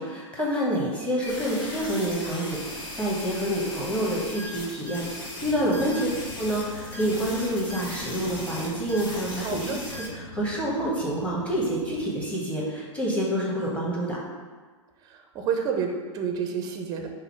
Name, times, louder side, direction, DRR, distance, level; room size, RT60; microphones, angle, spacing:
voice 1, 0.0-6.1 6.4-14.2, equal, 5° left, -6 dB, 1.1 m, -28 dB
sound 1, 1.2-10.1, left 1 dB, 35° left, 1.3 m, -38 dB
sound 2, 5.4-12.3, left 3 dB, 80° left, 0.6 m, -43 dB
voice 2, 9.4-9.8 15.3-17.1, right 6 dB, 25° right, 3 dB, 0.5 m, -29 dB
5.3 x 2.0 x 4.5 m, 1.4 s
figure-of-eight pair, 100°, 16 cm